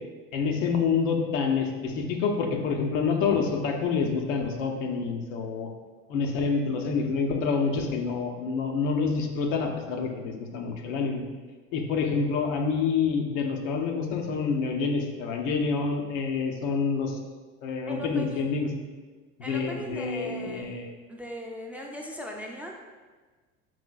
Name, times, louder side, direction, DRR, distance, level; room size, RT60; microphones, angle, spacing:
voice 1, 0.3-5.7 6.1-11.2 11.7-17.2 17.6-18.7 19.5-20.9, left 5 dB, 85° left, 3 dB, 0.7 m, -27 dB
voice 2, 17.9-18.6 19.4-20.8 21.1-22.7, equal, 5° right, 0 dB, 0.4 m, -39 dB
4.8 x 3.9 x 2.3 m, 1.4 s
supercardioid pair, 95°, 37 cm